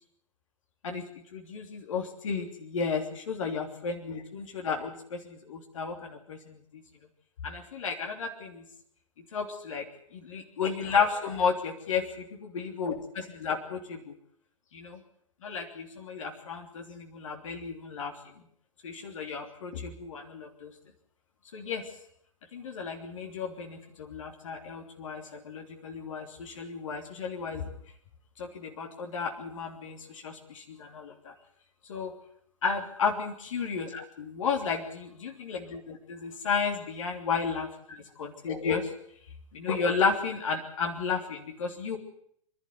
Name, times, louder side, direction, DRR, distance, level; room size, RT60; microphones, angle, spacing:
voice 1, 1.3-6.8 7.4-8.6 9.3-9.9 10.1-14.1 14.7-15.0 15.4-18.1 18.8-20.7 21.5-21.9 22.5-27.6 28.4-31.3 31.9-32.2 32.6-38.9 39.5-42.0, left 5 dB, 70° left, 3 dB, 3.2 m, -33 dB
26.5 x 12.0 x 9.6 m, 0.69 s
figure-of-eight pair, 95°, 17 cm